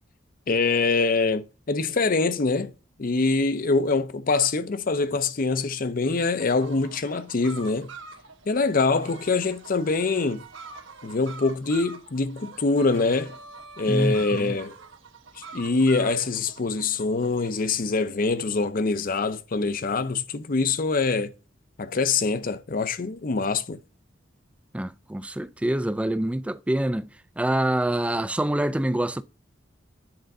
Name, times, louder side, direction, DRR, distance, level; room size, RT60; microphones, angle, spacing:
voice 1, 0.5-2.7 3.0-7.9 8.5-10.4 11.0-13.4 13.8-14.7 15.5-21.3 21.8-23.8, left 3 dB, 45° left, 0.6 m, -24 dB
sound 1, 6.1-17.5, right 4 dB, 80° right, 1.2 m, -45 dB
voice 2, 13.9-14.6 24.7-27.1 27.4-29.2, right 1 dB, 5° right, 0.3 m, -26 dB
8.8 x 3.8 x 5.4 m
head